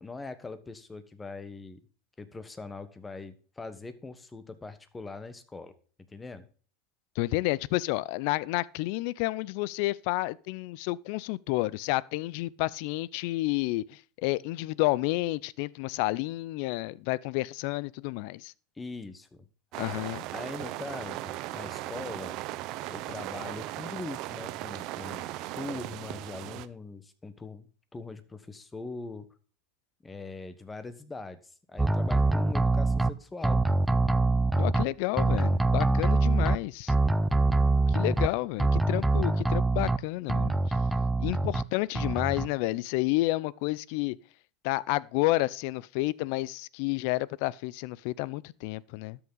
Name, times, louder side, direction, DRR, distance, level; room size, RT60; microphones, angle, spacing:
voice 1, 0.0-1.8 2.2-5.7 6.1-6.5 18.8-19.4 20.3-22.4 22.9-27.7 27.9-29.3 30.0-33.6, left 3 dB, 15° left, 1.1 m, -41 dB
voice 2, 7.2-18.5 19.8-20.2 34.6-36.9 37.9-40.5 41.2-44.2 44.6-49.2, left 19 dB, 65° left, 0.4 m, -30 dB
sound 1, 19.7-26.7, right 16 dB, 55° right, 0.6 m, -37 dB
sound 2, 31.8-33.1 33.4-34.8 35.2-36.6 36.9-38.3 38.6-40.0 40.3-41.6 42.0-42.5, right 2 dB, 5° right, 0.5 m, -24 dB
12.5 x 5.8 x 3.9 m
hypercardioid pair, 105°, 0 cm